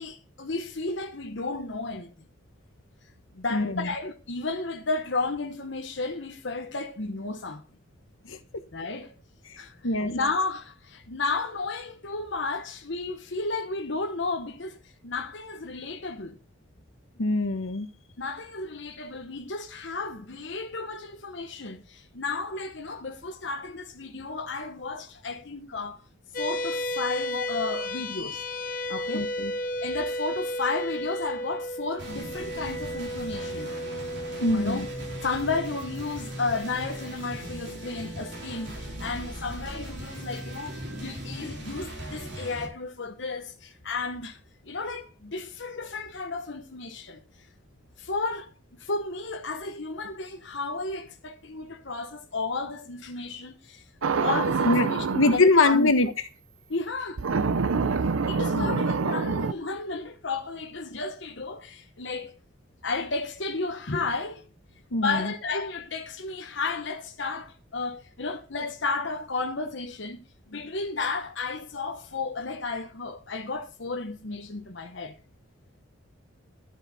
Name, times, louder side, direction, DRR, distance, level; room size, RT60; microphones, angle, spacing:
voice 1, 0.0-2.1 3.3-7.6 8.7-9.1 9.6-9.7 10.0-16.4 18.2-26.0 26.4-28.4 28.9-29.3 29.8-33.7 34.5-34.8 35.2-44.4 44.7-47.2 48.0-53.8 54.1-56.1 56.7-57.2 58.0-62.4 62.8-64.4 65.0-75.1, left 3 dB, 60° left, 1.1 m, -33 dB
voice 2, 3.5-3.9 8.3-8.4 9.8-10.1 17.2-17.9 27.3-27.4 29.1-29.5 34.4-34.9 54.6-54.9 55.2-56.1 58.5-58.8 64.9-65.3, left 2 dB, 80° left, 1.2 m, -23 dB
sound 1, 26.3-39.0, left 1 dB, 40° left, 0.8 m, -34 dB
sound 2, 32.0-42.6, right 1 dB, 55° right, 3.7 m, -39 dB
sound 3, 54.0-55.4 57.2-59.5, right 4 dB, 85° right, 0.6 m, -26 dB
12.5 x 6.6 x 4.1 m
head